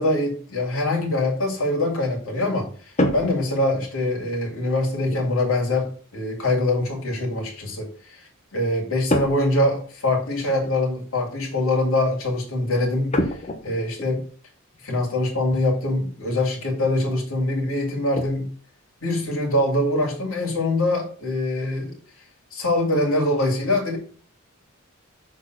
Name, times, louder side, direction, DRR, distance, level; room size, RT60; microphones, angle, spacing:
voice 1, 0.0-8.2 8.5-13.3 13.6-14.2 14.8-18.5 19.0-21.9 22.5-24.0, left 1 dB, 80° left, -1 dB, 2.6 m, -23 dB
sound 1, 3.0-4.1 5.1-5.3 9.1-9.6 9.9-10.0 10.6-10.8 13.1-14.1 15.5-15.6 16.0-16.1 16.6-16.8 17.2-17.3 17.7-18.4, left 1 dB, 30° left, 1.0 m, -27 dB
6.3 x 4.1 x 6.2 m, 0.42 s
head